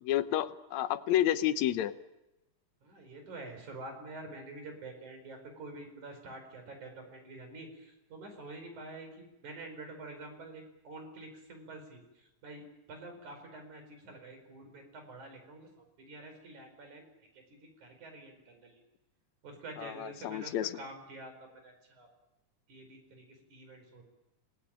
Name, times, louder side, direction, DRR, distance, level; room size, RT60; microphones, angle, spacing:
voice 1, 0.0-1.9 19.8-20.8, left 12 dB, 70° left, 10 dB, 2.2 m, -30 dB
voice 2, 2.8-12.0 12.4-17.1 17.3-18.7 19.4-22.1 22.7-24.1, right 2 dB, 70° right, 5 dB, 6.2 m, -47 dB
28.0 x 17.5 x 8.9 m, 0.96 s
omnidirectional pair, 3.6 m